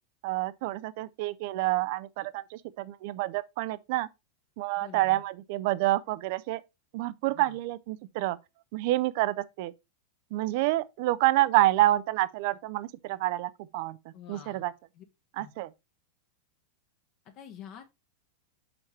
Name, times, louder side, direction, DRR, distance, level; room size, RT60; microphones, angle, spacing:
voice 1, 0.2-4.1 4.6-6.6 6.9-8.4 8.7-9.7 10.3-14.0 14.3-14.7 15.4-15.7, right 16 dB, 50° right, 0.5 m, -28 dB
voice 2, 4.8-5.2 7.3-7.6 14.1-14.7 14.9-15.0 15.4-15.5 17.2-17.8, left 9 dB, 40° left, 1.1 m, -47 dB
5.9 x 5.1 x 4.3 m
figure-of-eight pair, 90°, 0 cm